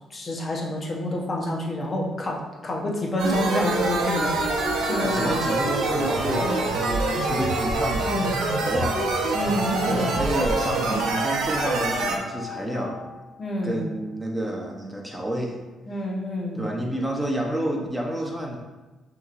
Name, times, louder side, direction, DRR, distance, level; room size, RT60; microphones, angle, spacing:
voice 1, 0.1-5.4 8.0-8.3 9.3-10.2 13.4-13.8 15.9-16.6, left 1 dB, 40° left, -1 dB, 1.0 m, -28 dB
sound 1, 3.2-12.2, right 3 dB, 85° right, 0.7 m, -25 dB
sound 2, 3.7-13.8, left 8 dB, 85° left, 0.5 m, -39 dB
voice 2, 5.0-9.1 9.8-13.0 13.6-15.6 16.5-18.6, right 1 dB, 10° right, -1 dB, 0.9 m, -29 dB
5.8 x 3.0 x 2.6 m, 1.1 s
cardioid pair, 90°, 0 cm